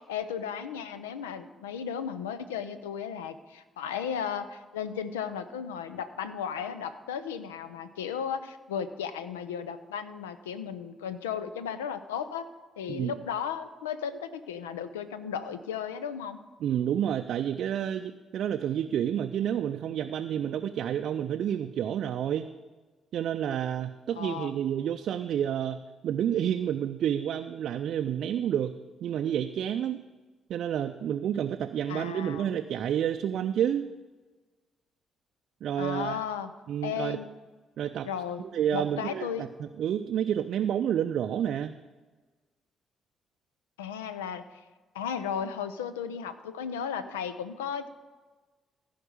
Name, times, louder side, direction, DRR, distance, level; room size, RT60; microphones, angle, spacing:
voice 1, 0.0-12.5 12.8-16.4 24.1-24.5 31.9-32.5 35.8-36.5 36.8-37.3 38.0-38.4 38.7-39.5 43.8-44.4 44.9-47.9, left 7 dB, 80° left, 12 dB, 0.5 m, -35 dB
voice 2, 16.6-22.5 23.1-28.7 29.0-30.0 30.5-33.9 35.6-36.2 36.7-37.2 37.8-38.1 38.3-41.8, right 9 dB, 60° right, 6 dB, 0.4 m, -29 dB
15.5 x 5.1 x 7.8 m, 1.3 s
figure-of-eight pair, 40°, 0 cm